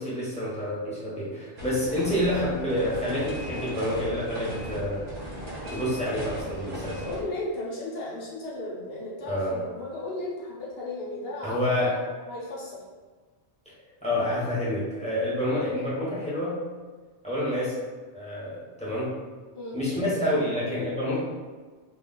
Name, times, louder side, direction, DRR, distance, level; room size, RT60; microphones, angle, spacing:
voice 1, 0.0-5.0 5.7-7.0 9.2-9.6 11.4-11.9 14.0-16.6 17.2-17.7 18.1-19.2 19.7-21.2, left 1 dB, 5° left, -8 dB, 0.7 m, -28 dB
sound 1, 1.6-7.2, equal, 40° right, 0.7 m, -37 dB
voice 2, 7.0-11.6 11.9-12.8 19.5-19.8, left 2 dB, 65° left, -5 dB, 0.8 m, -35 dB
2.3 x 2.2 x 3.6 m, 1.4 s
omnidirectional pair, 1.2 m